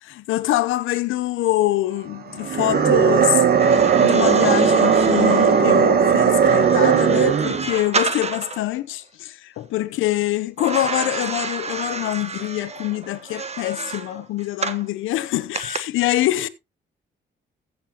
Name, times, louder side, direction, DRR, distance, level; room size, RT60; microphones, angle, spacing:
voice 1, 0.0-3.4 4.0-16.5, left 15 dB, 85° left, 0.8 m, -24 dB
sound 1, 2.4-7.7, right 6 dB, 50° right, 1.5 m, -17 dB
sound 2, 3.5-8.7 10.6-14.9 15.5-15.8, right 4 dB, 35° right, 1.3 m, -30 dB
15.0 x 7.5 x 2.9 m
cardioid pair, 90°, 20 cm